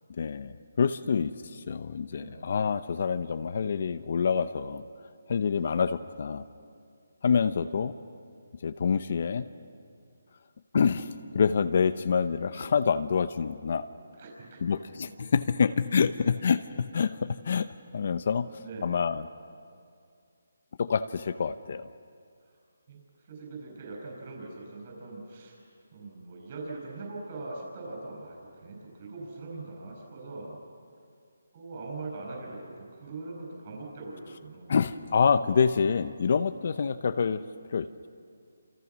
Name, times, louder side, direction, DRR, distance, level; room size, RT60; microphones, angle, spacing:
voice 1, 0.2-4.8 5.3-6.4 7.2-7.9 8.6-9.5 10.7-13.9 14.6-18.5 18.8-19.3 20.8-21.9 34.7-38.1, left 6 dB, 45° left, 11 dB, 0.7 m, -27 dB
voice 2, 2.1-2.5 14.2-14.6 18.6-19.0 22.9-23.0 23.3-25.6 25.9-30.6 31.5-34.8, right 3 dB, 35° right, -1 dB, 7.4 m, -41 dB
30.0 x 28.0 x 6.2 m, 2.3 s
hypercardioid pair, 170°, 0 cm